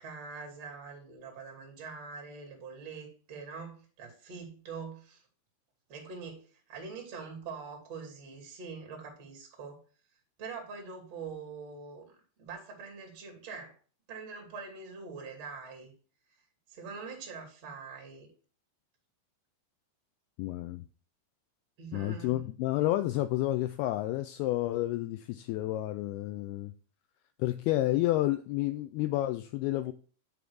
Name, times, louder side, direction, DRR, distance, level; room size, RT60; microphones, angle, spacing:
voice 1, 0.0-5.2 5.9-9.8 10.4-12.0 12.4-13.8 14.1-15.9 16.7-18.3 21.8-22.5, right 5 dB, 40° right, 1 dB, 3.2 m, -44 dB
voice 2, 20.4-20.9 21.9-26.7 27.4-29.9, left 15 dB, 90° left, 9 dB, 2.2 m, -30 dB
9.5 x 3.6 x 6.2 m, 0.39 s
omnidirectional pair, 5.1 m